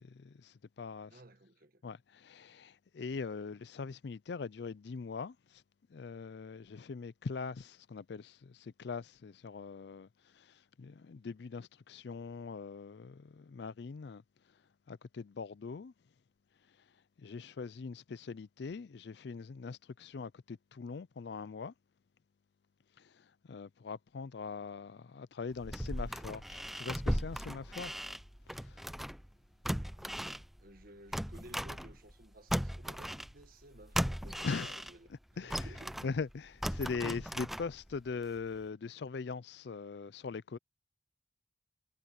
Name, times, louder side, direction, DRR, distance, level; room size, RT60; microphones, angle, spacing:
voice 1, 0.0-1.2 1.8-5.6 5.9-10.1 10.3-14.2 14.9-15.9 17.2-21.7 23.0-28.0 28.6-28.9 34.4-34.8 35.4-35.5 36.0-40.6, left 5 dB, 60° left, 0.4 m, -42 dB
voice 2, 1.1-1.8 29.7-36.0, right 1 dB, 50° right, 1.6 m, -56 dB
sound 1, 25.5-29.3 29.6-32.2 32.5-35.1 35.5-38.0 38.4-38.5, equal, ahead, 0.5 m, -37 dB
head